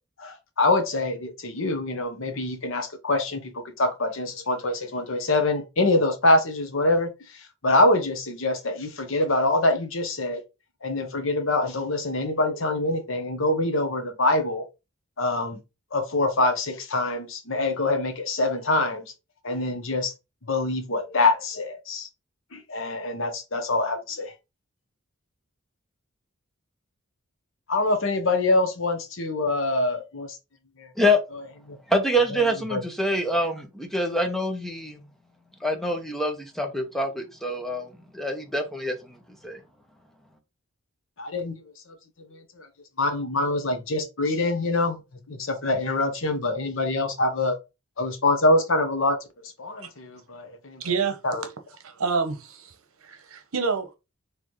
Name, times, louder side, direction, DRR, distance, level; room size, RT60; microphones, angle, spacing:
voice 1, 0.2-10.4 10.8-14.6 15.2-15.6 15.9-19.0 19.4-20.1 20.5-22.1 22.5-24.3 27.7-30.4 30.8-30.9 31.3-31.8 32.3-32.4 32.7-32.8 41.2-41.6 42.3-42.7 43.0-45.0 45.3-47.6 48.0-50.8 51.2-51.4, left 2 dB, 65° left, 1.0 m, -25 dB
voice 2, 31.9-35.0 35.6-39.6, equal, ahead, 0.8 m, -26 dB
voice 3, 50.8-51.2 51.8-52.7 53.0-54.0, right 5 dB, 80° right, 0.9 m, -27 dB
4.4 x 3.2 x 3.1 m
head